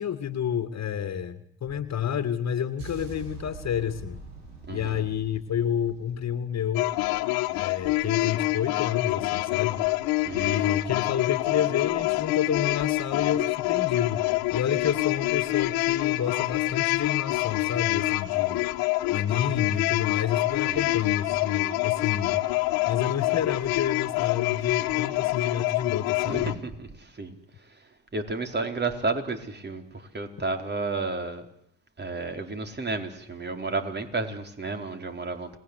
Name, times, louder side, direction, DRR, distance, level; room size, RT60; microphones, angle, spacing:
voice 1, 0.0-4.2 4.7-6.9 7.5-9.8 10.3-14.2 14.5-18.7 19.1-22.4 22.9-26.6, left 8 dB, 45° left, 11 dB, 2.2 m, -29 dB
sound 1, 2.8-6.9, right 2 dB, 90° right, 7.3 m, -43 dB
voice 2, 4.7-5.0 10.2-10.6 20.7-21.1 26.2-27.4 28.1-31.5 32.0-35.5, right 3 dB, 30° right, 6 dB, 4.5 m, -32 dB
sound 2, 6.7-26.6, left 19 dB, 75° left, 1.3 m, -26 dB
29.5 x 20.5 x 8.3 m, 0.71 s
hypercardioid pair, 60°, 36 cm